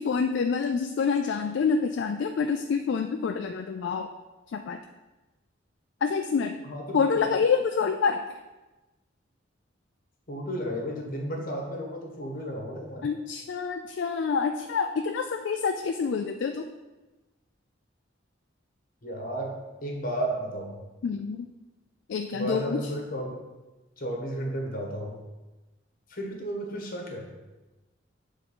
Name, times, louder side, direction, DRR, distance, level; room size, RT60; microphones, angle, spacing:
voice 1, 0.0-4.1 4.5-4.8 6.0-6.6 6.9-8.2 13.0-16.7 21.0-21.5 22.1-22.8, left 5 dB, 65° left, 6 dB, 0.3 m, -27 dB
voice 2, 6.6-7.3 10.3-13.0 19.0-19.6 19.8-20.7 22.3-23.4 24.0-25.2 26.1-27.3, right 1 dB, 50° left, 0 dB, 1.4 m, -33 dB
6.8 x 3.7 x 5.4 m, 1.1 s
head